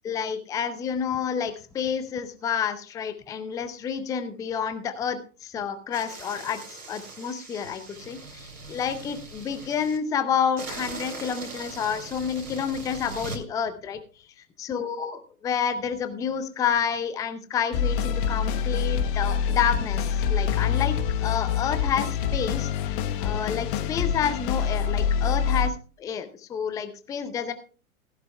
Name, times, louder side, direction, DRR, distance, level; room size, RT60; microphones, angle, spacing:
voice 1, 0.0-6.6 6.9-14.0 14.6-22.9 23.2-27.5, left 7 dB, 10° left, 10 dB, 0.6 m, -29 dB
sound 1, 5.9-10.0 10.6-13.4, right 3 dB, 85° right, 3.0 m, -40 dB
sound 2, 17.7-25.7, left 7 dB, 35° left, 1.1 m, -26 dB
16.5 x 11.5 x 2.3 m, 0.35 s
figure-of-eight pair, 120°, 44 cm